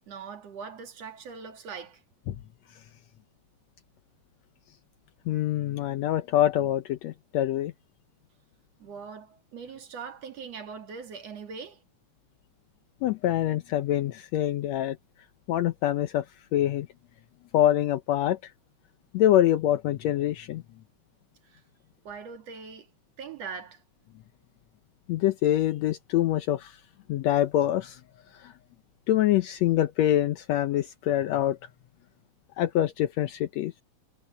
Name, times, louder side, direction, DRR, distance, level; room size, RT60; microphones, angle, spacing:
voice 1, 0.1-2.0 8.8-11.8 21.4-21.6 22.0-22.9 23.2-23.8, right 5 dB, 60° right, 3.1 m, -41 dB
voice 2, 5.3-7.7 13.0-15.0 15.5-16.2 16.5-16.9 17.5-18.4 19.1-20.6 25.1-26.8 27.1-28.0 28.4-28.5 29.1-31.6 32.6-33.7, left 12 dB, 75° left, 1.9 m, -25 dB
omnidirectional pair, 3.3 m